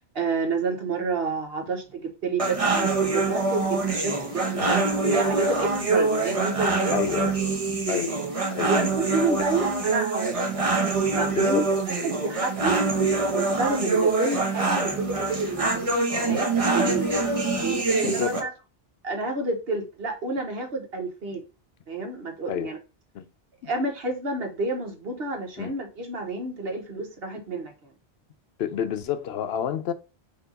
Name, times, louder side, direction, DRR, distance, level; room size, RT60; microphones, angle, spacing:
voice 1, 0.1-7.2 8.6-10.4 11.1-17.1 17.6-18.5 19.0-21.4 21.9-22.8 23.7-27.9, right 3 dB, 65° right, 1.4 m, -29 dB
sound 1, 2.4-18.4, right 3 dB, 35° right, 1.0 m, -25 dB
voice 2, 6.9-7.3 7.9-8.1 8.5-8.7 11.3-11.6 16.3-16.4 17.5-17.6 18.0-18.3 22.5-22.7 23.1-23.3 23.6-23.7 25.6-25.7 28.6-29.9, left 8 dB, 75° left, 0.8 m, -29 dB
4.5 x 2.8 x 3.9 m
omnidirectional pair, 1.1 m